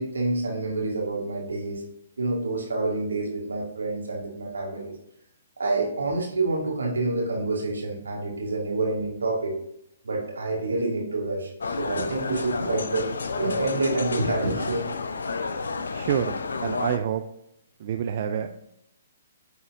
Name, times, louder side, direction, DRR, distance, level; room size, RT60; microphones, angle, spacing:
voice 1, 0.0-1.8 2.2-4.9 5.6-9.5 10.0-13.1 13.4-14.9, right 2 dB, 85° right, -1 dB, 2.1 m, -27 dB
sound 1, 11.6-17.0, left 4 dB, 80° left, 0.6 m, -31 dB
voice 2, 15.9-16.4 16.6-17.2 17.8-18.7, right 9 dB, 50° right, 7 dB, 0.4 m, -27 dB
8.8 x 4.2 x 3.6 m, 0.77 s
hypercardioid pair, 130°, 0 cm